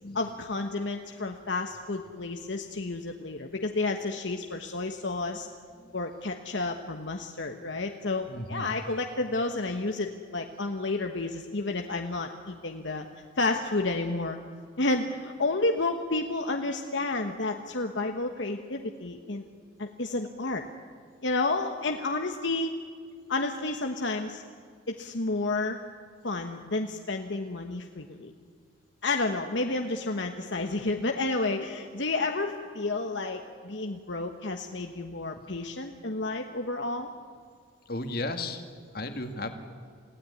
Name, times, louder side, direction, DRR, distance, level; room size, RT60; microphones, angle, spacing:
voice 1, 0.1-5.5 5.9-13.0 13.4-14.4 14.8-19.4 19.8-20.6 21.2-22.7 23.3-24.4 24.9-25.8 26.2-28.3 29.0-37.1, left 2 dB, 70° left, 4 dB, 1.3 m, -31 dB
voice 2, 8.3-8.6 37.9-38.6 38.9-39.5, left 2 dB, 50° left, 6 dB, 2.1 m, -34 dB
28.5 x 16.5 x 9.8 m, 2.1 s
head